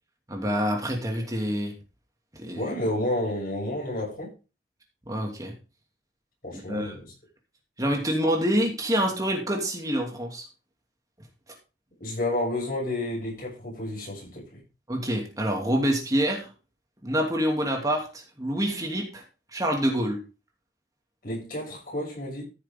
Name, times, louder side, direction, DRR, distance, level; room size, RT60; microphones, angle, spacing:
voice 1, 0.3-1.7 2.4-2.7 5.1-5.5 6.5-6.9 7.8-10.4 14.9-16.5 17.0-19.2 19.5-20.2, equal, 20° right, 2.7 m, -26 dB
voice 2, 2.5-4.3 6.4-7.1 12.0-14.6 21.2-22.4, left 1 dB, 55° left, 6.9 m, -30 dB
14.5 x 7.2 x 3.7 m
head